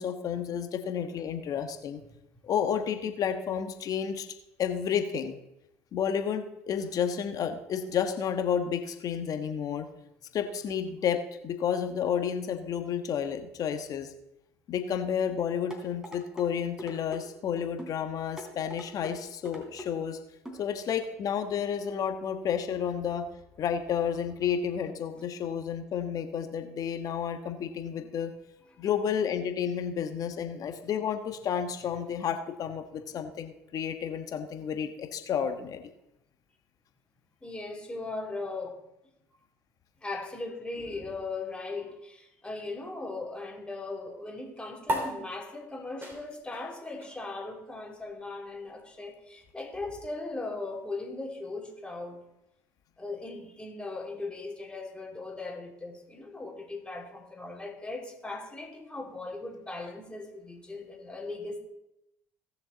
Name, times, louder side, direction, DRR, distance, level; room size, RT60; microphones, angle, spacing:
voice 1, 0.0-2.0 2.4-4.3 4.6-5.4 5.9-9.9 10.3-14.1 14.7-20.2 20.6-23.2 23.6-28.3 28.8-35.8, left 8 dB, 50° left, 7 dB, 1.3 m, -31 dB
sound 1, 15.7-16.5 16.8-17.2 17.8-18.0 18.4-19.1 19.5-19.9 20.5-20.6 21.0-21.1, equal, 10° right, 3.3 m, -42 dB
voice 2, 37.4-38.8 40.0-52.2 53.0-61.6, left 3 dB, 10° left, 0 dB, 2.9 m, -38 dB
sound 2, 44.8-51.7, right 1 dB, 25° right, 3.2 m, -40 dB
17.5 x 6.8 x 4.0 m, 0.87 s
hypercardioid pair, 65°, 8 cm